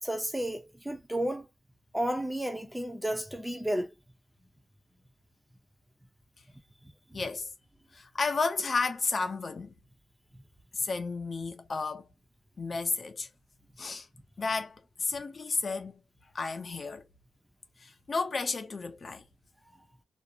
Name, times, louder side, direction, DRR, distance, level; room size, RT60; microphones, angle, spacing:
voice 1, 0.0-1.5 1.9-3.9 7.1-7.2, right 1 dB, 5° right, 0.5 m, -32 dB
voice 2, 7.1-7.5 7.9-9.7 10.7-12.1 12.6-13.3 13.8-14.1 14.4-16.0 16.3-17.0 17.8-19.2, left 4 dB, 45° left, 0.6 m, -32 dB
2.5 x 2.0 x 2.7 m
wide cardioid pair, 105°, 0 cm